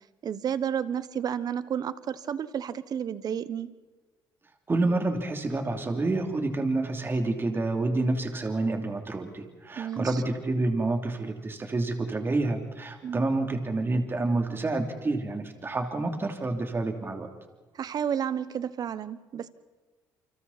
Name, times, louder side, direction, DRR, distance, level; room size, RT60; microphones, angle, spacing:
voice 1, 0.2-3.7 9.8-10.2 13.0-13.3 17.7-19.5, right 8 dB, 55° right, 15 dB, 1.1 m, -31 dB
voice 2, 4.7-17.3, right 2 dB, 30° right, 4 dB, 3.1 m, -28 dB
28.5 x 25.5 x 4.3 m, 1.3 s
cardioid pair, 85°, 8 cm